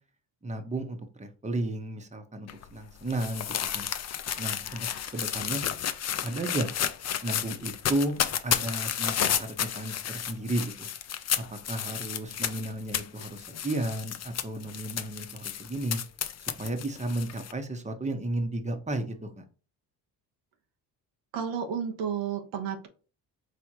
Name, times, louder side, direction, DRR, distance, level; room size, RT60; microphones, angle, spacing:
voice 1, 0.4-3.9 4.4-5.6 6.2-6.7 7.2-10.9 11.4-16.0 16.6-19.5, right 1 dB, 15° right, 6 dB, 1.1 m, -33 dB
sound 1, 2.5-17.5, left 9 dB, 40° left, 0.6 m, -32 dB
voice 2, 21.3-22.9, right 7 dB, 85° right, 3 dB, 1.1 m, -32 dB
4.7 x 3.4 x 2.9 m, 0.36 s
supercardioid pair, 65°, 42 cm